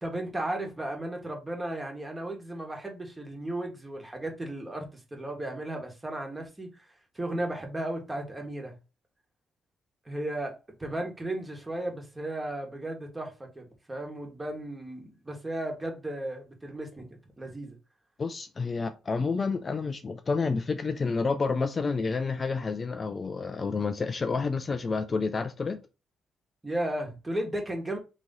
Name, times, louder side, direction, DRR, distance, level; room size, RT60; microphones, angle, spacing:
voice 1, 0.0-4.8 5.1-6.9 7.1-8.8 10.0-17.1 17.4-17.8 26.6-28.0, right 1 dB, 15° right, 1.4 m, -35 dB
voice 2, 18.2-25.8, left 4 dB, 35° left, 0.4 m, -29 dB
4.1 x 3.0 x 3.7 m
cardioid pair, 90°, 0 cm